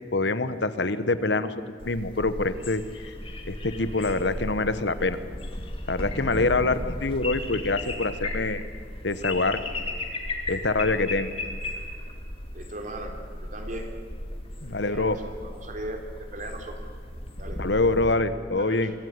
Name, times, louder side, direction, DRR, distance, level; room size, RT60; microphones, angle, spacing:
voice 1, 0.1-1.5 1.8-3.1 3.5-5.2 5.9-8.6 9.0-9.6 10.5-11.3 14.6-15.2 17.6-18.9, left 3 dB, 75° left, 12 dB, 1.3 m, -25 dB
sound 1, 1.8-18.1, left 1 dB, 30° left, 2.8 m, -35 dB
voice 2, 12.5-13.1 13.4-13.9 14.6-16.8 17.4-17.6 18.6-18.9, right 1 dB, 45° right, 3 dB, 3.6 m, -38 dB
24.5 x 15.5 x 9.8 m, 2.2 s
head